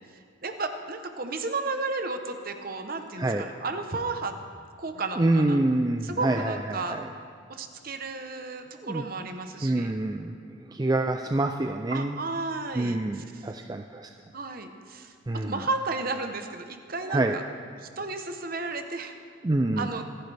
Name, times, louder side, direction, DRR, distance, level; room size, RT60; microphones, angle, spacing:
voice 1, 0.1-4.4 4.8-5.6 6.0-7.0 7.5-9.9 11.9-13.5 14.3-17.4 17.8-19.1 19.8-20.0, right 3 dB, 45° right, 7 dB, 0.9 m, -33 dB
voice 2, 5.2-7.0 8.8-9.0 9.6-12.2 12.7-14.1 15.3-15.6 17.1-17.4 19.4-19.9, right 2 dB, 20° right, 4 dB, 0.4 m, -26 dB
25.5 x 10.5 x 3.4 m, 2.1 s
head